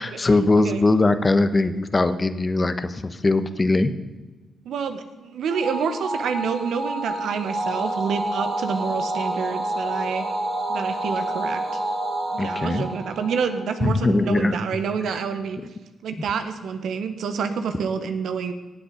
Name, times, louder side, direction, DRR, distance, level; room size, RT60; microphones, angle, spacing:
voice 1, 0.0-3.9 12.4-12.9 13.8-14.5, left 2 dB, 30° left, 11 dB, 1.0 m, -21 dB
voice 2, 4.6-10.3 10.7-11.6 12.3-15.6 16.0-18.5, right 6 dB, 70° right, 8 dB, 1.2 m, -28 dB
sound 1, 5.5-14.1, right 1 dB, 55° right, 2.7 m, -29 dB
17.0 x 7.9 x 5.2 m, 1.2 s
supercardioid pair, 50°, 0 cm